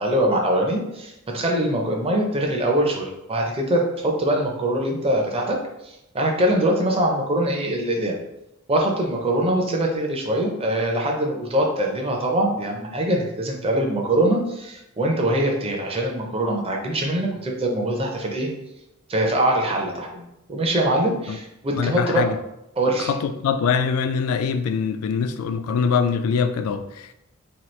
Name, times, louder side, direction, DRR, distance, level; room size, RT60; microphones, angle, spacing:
voice 1, 0.0-5.6 5.8-8.2 8.7-18.5 19.1-22.3 22.8-23.1, right 1 dB, 25° right, 0.5 m, -23 dB
voice 2, 21.8-22.4 23.0-27.1, left 6 dB, 75° left, 0.3 m, -23 dB
2.9 x 2.4 x 3.1 m
head